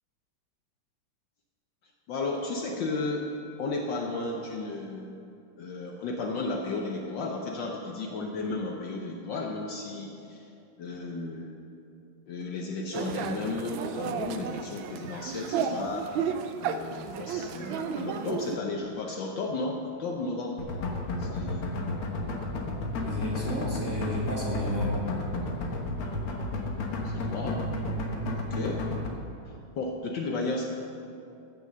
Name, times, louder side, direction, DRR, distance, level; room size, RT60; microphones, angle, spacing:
voice 1, 2.1-3.3 3.6-5.2 5.6-10.5 10.8-11.5 12.3-16.1 16.6-20.6 21.2-21.7 27.0-27.6 28.3-28.8 29.4-30.6, left 3 dB, 65° left, 1 dB, 1.5 m, -34 dB
sound 1, 12.9-18.6, right 6 dB, 75° right, 1.3 m, -33 dB
sound 2, 20.6-29.1, left 2 dB, 85° left, 2.1 m, -32 dB
voice 2, 23.0-25.0, left 1 dB, 10° right, -7 dB, 2.7 m, -31 dB
15.0 x 6.5 x 6.6 m, 2.5 s
omnidirectional pair, 2.3 m